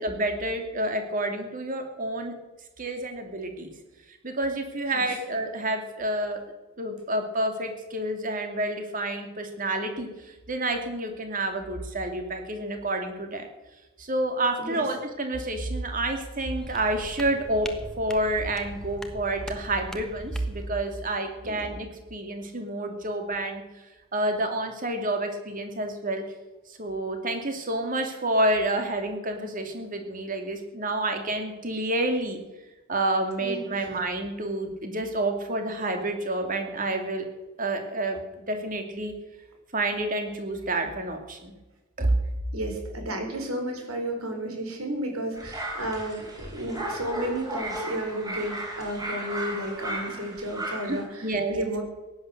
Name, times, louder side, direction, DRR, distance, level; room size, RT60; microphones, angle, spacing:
voice 1, 0.0-2.3 2.8-3.7 4.1-6.4 6.8-13.5 14.0-17.7 18.0-23.6 24.1-26.2 26.8-32.4 32.9-37.2 37.6-39.1 39.7-41.5 42.0-42.2 50.9-51.6, right 1 dB, 40° right, 5 dB, 2.5 m, -29 dB
sound 1, 16.6-20.7, equal, 5° left, 1.3 m, -42 dB
voice 2, 33.4-33.9 42.5-51.8, right 1 dB, 85° right, 3 dB, 4.5 m, -32 dB
sound 2, 45.3-51.0, right 1 dB, 15° right, 4.4 m, -35 dB
17.0 x 11.0 x 6.7 m, 1.1 s
head